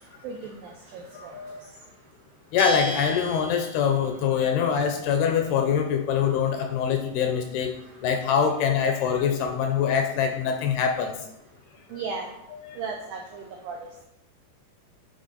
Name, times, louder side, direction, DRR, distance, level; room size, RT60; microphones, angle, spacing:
voice 1, 0.2-1.7 7.8-7.9 11.9-12.3 12.8-13.9, right 4 dB, 90° right, 1 dB, 2.0 m, -36 dB
voice 2, 1.1-1.6 2.5-7.8 8.0-11.1 12.7-12.8, left 7 dB, 80° left, 5 dB, 2.4 m, -24 dB
Bell, 2.6-4.2, equal, 65° right, 3.8 m, -35 dB
10.5 x 5.1 x 4.0 m, 0.83 s
omnidirectional pair, 5.1 m